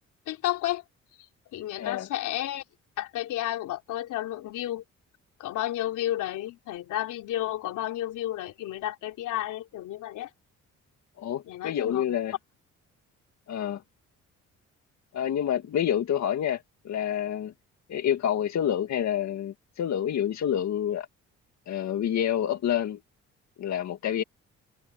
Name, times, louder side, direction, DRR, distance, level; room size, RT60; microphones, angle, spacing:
voice 1, 0.3-0.8 1.5-2.6 3.0-4.8 5.4-10.3 11.5-12.0, left 13 dB, 85° left, 3.7 m, -32 dB
voice 2, 1.8-2.1 11.2-12.3 13.5-13.8 15.1-17.5 17.9-21.1 21.7-23.0 23.6-24.2, left 10 dB, 65° left, 2.0 m, -28 dB
cardioid pair, 90°, 30 cm